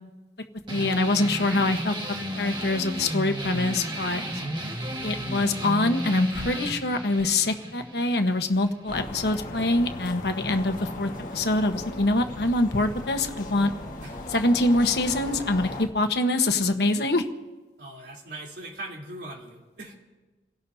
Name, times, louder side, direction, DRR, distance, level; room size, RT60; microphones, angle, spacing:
voice 1, 0.7-1.9 2.4-4.2 5.0-13.7 14.3-17.3, left 2 dB, 70° left, 6 dB, 1.2 m, -24 dB
sound 1, 0.7-9.7, equal, 25° right, 1.8 m, -34 dB
sound 2, 8.9-15.9, left 1 dB, 50° left, 1.7 m, -37 dB
voice 2, 17.8-19.9, right 1 dB, 70° right, -2 dB, 3.6 m, -40 dB
28.5 x 17.0 x 2.8 m, 1.2 s
head